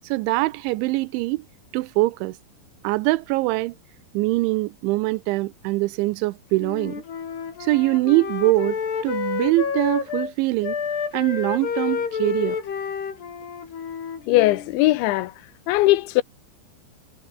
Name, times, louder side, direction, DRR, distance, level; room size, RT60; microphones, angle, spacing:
voice 1, 0.0-1.4 1.7-2.4 2.8-3.7 4.1-7.0 7.6-10.8 11.1-12.6, right 21 dB, 90° right, 3.1 m, -23 dB
Wind instrument woodwind instrument, 6.6-10.3 10.6-14.7, left 6 dB, 65° left, 6.2 m, -29 dB
voice 2, 14.3-15.3 15.7-16.2, left 17 dB, 90° left, 3.4 m, -19 dB
omnidirectional pair, 5.2 m